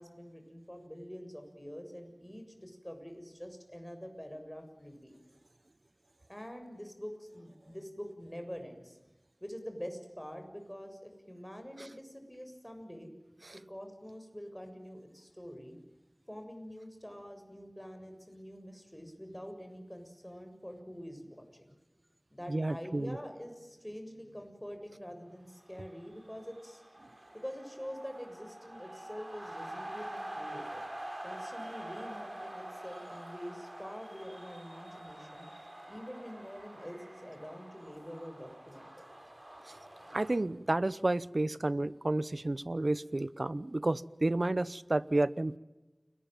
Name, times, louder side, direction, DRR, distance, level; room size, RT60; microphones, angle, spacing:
voice 1, 0.0-5.2 6.3-9.0 9.4-13.1 13.7-15.8 16.3-21.7 22.3-26.8 27.3-30.8 31.2-35.5 35.9-39.0, equal, 10° left, 7.1 m, -46 dB
voice 2, 22.5-23.2 39.7-39.8 40.1-45.6, right 2 dB, 65° right, 0.9 m, -31 dB
sound 1, 25.6-40.4, right 1 dB, 45° right, 5.9 m, -46 dB
29.5 x 21.0 x 9.2 m
wide cardioid pair, 45°, 0 cm